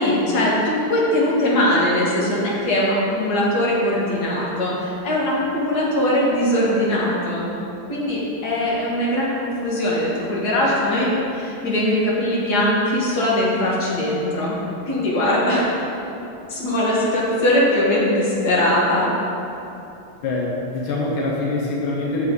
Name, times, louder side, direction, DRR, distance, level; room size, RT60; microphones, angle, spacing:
voice 1, 0.0-7.4 7.9-14.6 14.9-15.7 16.5-19.1, left 1 dB, 55° left, -5 dB, 2.1 m, -21 dB
voice 2, 20.2-22.3, left 2 dB, 90° left, -2 dB, 1.7 m, -24 dB
7.9 x 7.4 x 3.9 m, 2.8 s
omnidirectional pair, 2.1 m